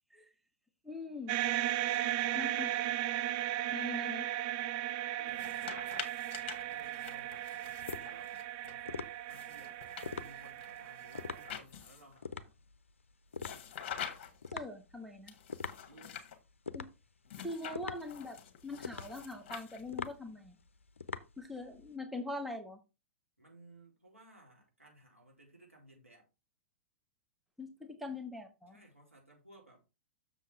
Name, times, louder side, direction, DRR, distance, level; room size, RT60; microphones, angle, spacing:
voice 1, 0.8-1.4 2.3-2.7 3.7-4.3 14.5-15.3 16.7-16.9 17.4-20.6 21.4-22.8 27.6-28.8, left 2 dB, ahead, 1.1 m, -42 dB
sound 1, 1.3-11.5, right 13 dB, 35° right, 0.6 m, -36 dB
voice 2, 1.8-3.0 5.2-5.9 6.5-8.4 8.6-12.7 15.9-16.2 23.4-26.3 28.7-29.8, right 1 dB, 90° right, 3.5 m, -59 dB
sound 2, 5.3-8.7 9.3-12.2 13.4-14.5 15.3-16.4 17.3-20.1, left 8 dB, 45° left, 1.4 m, -47 dB
sound 3, 6.4-21.9, left 5 dB, 70° left, 0.6 m, -45 dB
7.2 x 6.7 x 3.5 m
figure-of-eight pair, 105°, 7 cm